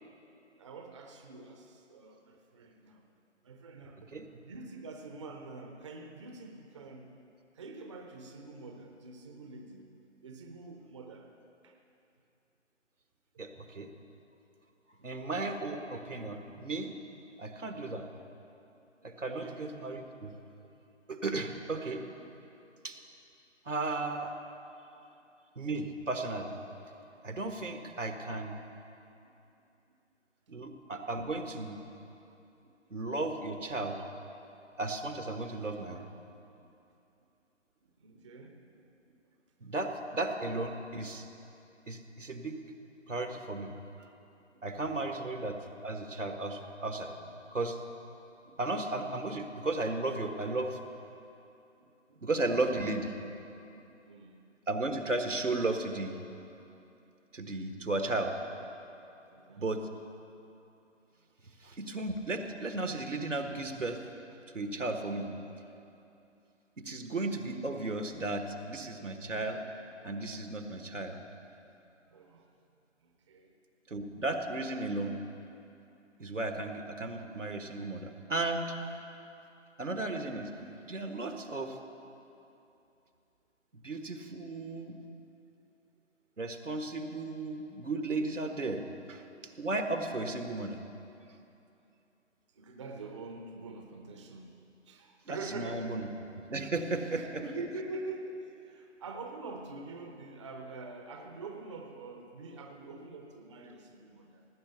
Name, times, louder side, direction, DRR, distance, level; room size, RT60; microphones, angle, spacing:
voice 1, 0.6-3.0 3.4-7.1 7.5-9.9 10.2-11.4 11.6-11.8 13.3-13.5 15.0-15.1 19.0-19.7 29.2-29.3 30.5-30.7 32.6-32.7 36.6-36.7 37.8-39.2 43.6-43.7 44.5-44.7 45.0-45.3 48.4-48.6 51.8-52.2 53.9-54.4 59.2-59.7 72.1-72.5 73.0-73.5 92.5-94.6 94.9-96.0 97.1-104.5, right 3 dB, 25° right, 4 dB, 0.7 m, -46 dB
voice 2, 13.4-13.9 15.0-16.9 17.4-18.1 19.0-20.3 21.1-22.0 22.8-23.0 23.6-24.3 25.6-26.6 27.2-28.6 30.5-31.8 32.9-34.0 34.8-36.1 39.6-41.3 41.9-42.6 43.1-43.7 44.0-44.1 44.6-45.6 45.8-47.2 47.5-47.8 48.6-50.8 52.2-53.1 54.7-56.2 57.3-58.3 59.6-59.8 61.6-64.0 64.5-65.3 66.8-69.6 70.0-71.2 73.9-75.1 76.2-78.8 79.8-80.5 80.9-81.8 83.8-85.0 86.4-89.2 89.6-90.8 95.3-96.1 96.5-97.4, right 2 dB, 80° right, 6 dB, 1.5 m, -34 dB
17.5 x 8.9 x 6.8 m, 2.8 s
figure-of-eight pair, 145°, 37 cm